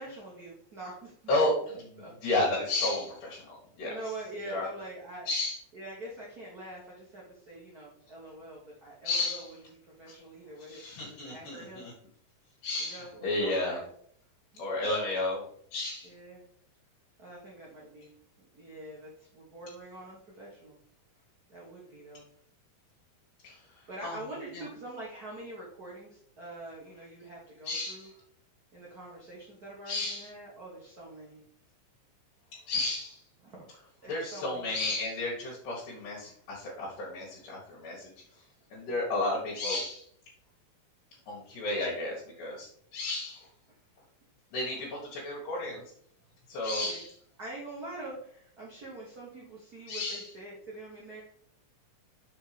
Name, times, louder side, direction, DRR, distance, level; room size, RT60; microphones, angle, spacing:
voice 1, 0.0-1.1 2.0-2.1 3.8-5.3 5.7-9.6 9.8-10.8 11.2-11.9 12.8-13.9 14.5-14.7 16.0-16.4 17.2-18.1 18.5-20.8 21.5-22.2 23.9-28.1 28.7-31.4 33.4-33.7 34.0-34.8 43.7-43.8 46.8-47.0 47.4-51.2, right 2 dB, 45° right, -5 dB, 1.4 m, -44 dB
voice 2, 1.3-1.8 2.2-3.9 4.4-4.6 5.3-5.6 9.0-9.5 10.7-11.9 12.6-13.8 14.6-15.4 15.7-16.1 23.4-23.6 24.0-24.2 24.5-24.6 27.7-28.1 29.9-30.3 32.5-33.2 34.1-38.1 38.7-40.1 41.3-43.5 44.5-45.8 46.5-47.1 49.9-50.3, left 2 dB, 80° left, -5 dB, 3.0 m, -32 dB
6.0 x 4.4 x 5.0 m, 0.64 s
omnidirectional pair, 3.7 m